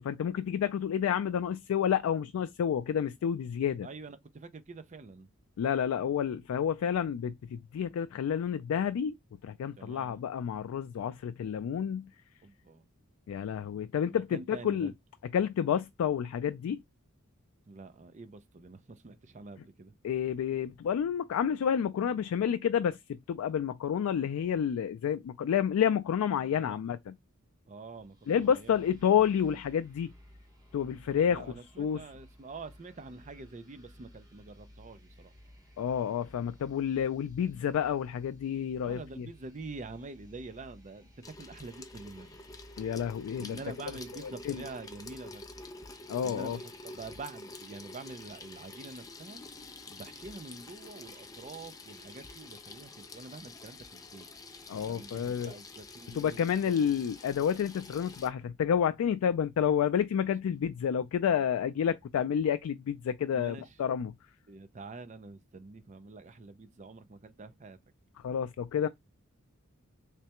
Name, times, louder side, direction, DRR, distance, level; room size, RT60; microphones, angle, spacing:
voice 1, 0.0-3.9 5.6-9.2 9.4-12.1 13.3-14.9 15.3-16.8 20.0-27.1 28.3-30.1 30.7-32.0 35.8-39.3 42.8-43.6 44.5-44.6 46.1-46.6 54.7-55.5 56.1-64.1 68.2-68.9, left 8 dB, 85° left, 0.3 m, -29 dB
voice 2, 3.8-5.3 9.8-10.2 12.4-12.8 14.1-14.9 17.7-19.9 26.5-26.8 27.7-28.9 31.3-35.3 38.8-42.4 43.4-45.4 46.2-49.4 49.9-54.3 54.7-57.0 63.3-63.7 64.5-67.8, right 3 dB, 35° right, 0.5 m, -46 dB
sound 1, 27.9-45.7, left 1 dB, 15° right, 0.9 m, -57 dB
Water tap faucet / Sink (filling or washing), 41.2-58.3, left 2 dB, 15° left, 0.5 m, -48 dB
3.3 x 3.2 x 2.9 m
head